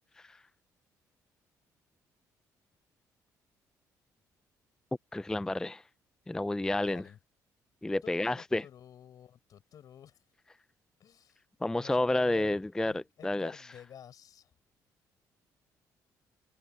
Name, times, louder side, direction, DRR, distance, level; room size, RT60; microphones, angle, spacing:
voice 1, 5.1-5.8 6.3-7.0 7.8-8.6 11.6-13.5, left 2 dB, 10° left, 0.4 m, -30 dB
voice 2, 6.7-7.2 8.0-10.2 11.0-11.4 11.7-14.5, left 9 dB, 65° left, 5.7 m, -51 dB
cardioid pair, 80°, 7 cm